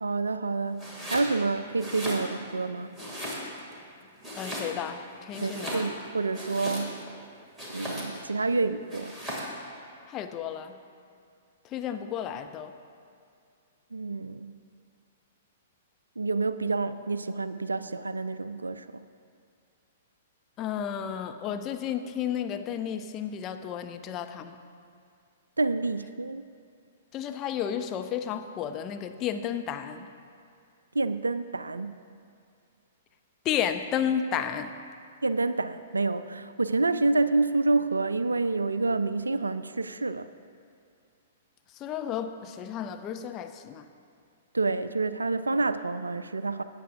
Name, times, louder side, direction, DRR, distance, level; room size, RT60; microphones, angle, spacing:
voice 1, 0.0-3.0 5.4-7.0 7.7-9.2 13.9-14.5 16.2-19.0 25.6-26.5 30.9-32.0 35.2-40.3 44.5-46.6, right 3 dB, 80° right, 13 dB, 0.3 m, -28 dB
Domestic sounds home sounds, 0.8-1.3 1.7-2.6 3.0-3.7 4.2-5.0 5.3-7.1 7.6-8.3 8.9-9.6, equal, 10° right, 2.4 m, -37 dB
voice 2, 4.4-5.9 10.1-10.8 11.7-12.7 20.6-24.6 27.1-30.1 33.4-34.7 41.8-43.9, left 9 dB, 30° left, 7 dB, 0.6 m, -32 dB
16.5 x 8.9 x 2.6 m, 2.4 s
figure-of-eight pair, 110°, 0 cm